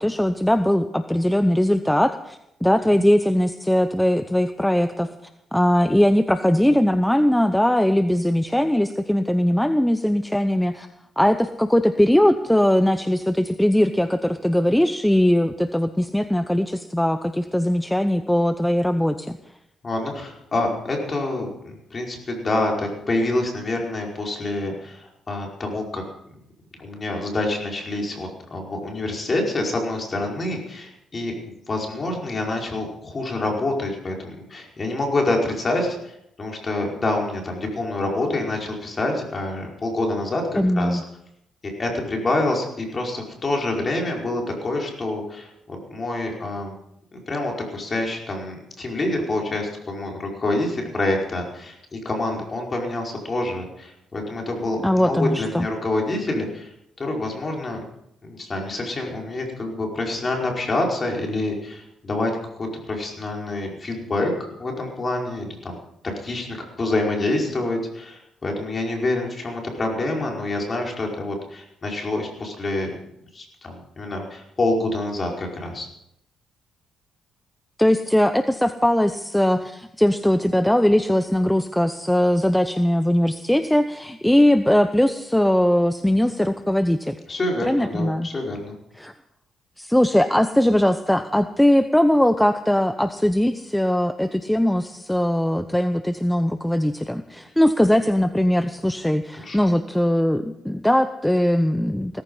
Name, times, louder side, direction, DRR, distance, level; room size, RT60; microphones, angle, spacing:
voice 1, 0.0-5.1 5.5-10.9 11.2-19.4 40.6-41.0 54.8-55.7 77.8-87.2 87.7-88.3 89.0-89.1 89.8-102.2, left 1 dB, 5° left, 10 dB, 0.8 m, -20 dB
voice 2, 19.8-26.0 26.8-31.3 31.7-41.0 41.6-46.7 47.1-56.7 57.0-57.8 58.2-62.3 62.6-64.3 64.6-65.8 66.2-72.9 73.3-75.9 87.3-88.8 99.4-99.6, left 2 dB, 35° left, 0 dB, 5.1 m, -27 dB
17.0 x 14.5 x 5.6 m, 0.77 s
cardioid pair, 90°, 0 cm